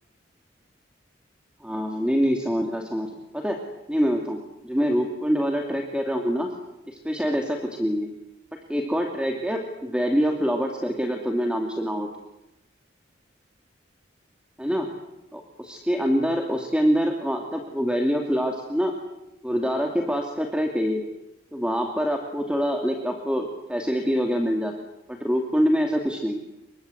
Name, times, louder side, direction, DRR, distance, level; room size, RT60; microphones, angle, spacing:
voice 1, 1.6-3.6 3.9-4.4 4.6-6.5 6.9-8.1 8.7-12.1 14.6-14.9 15.3-18.9 19.4-21.0 21.5-24.7 25.1-26.4, equal, 5° right, 2 dB, 2.6 m, -25 dB
29.5 x 24.0 x 8.1 m, 0.92 s
head